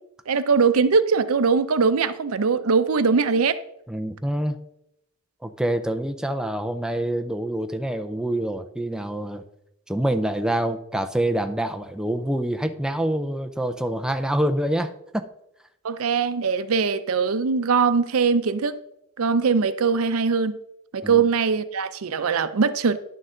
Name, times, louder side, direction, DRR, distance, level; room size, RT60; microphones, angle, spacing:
voice 1, 0.3-3.6 15.8-18.8 19.2-20.5 20.9-23.0, right 5 dB, 80° right, 0.6 m, -21 dB
voice 2, 3.9-4.6 5.4-9.4 9.9-15.3 21.0-21.2, right 1 dB, 5° right, 0.4 m, -26 dB
10.5 x 6.6 x 3.8 m
head